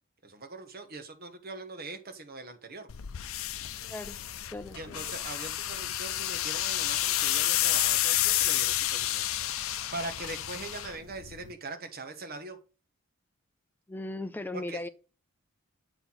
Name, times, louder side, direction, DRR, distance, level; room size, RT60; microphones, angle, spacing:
voice 1, 0.2-2.9 4.7-9.3 9.6-12.6 14.5-14.8, right 3 dB, 45° right, 1.2 m, -41 dB
sound 1, 2.9-11.5, left 13 dB, 80° left, 0.5 m, -30 dB
voice 2, 4.5-5.0 13.9-14.9, left 2 dB, 10° left, 0.5 m, -37 dB
8.0 x 4.4 x 3.9 m
head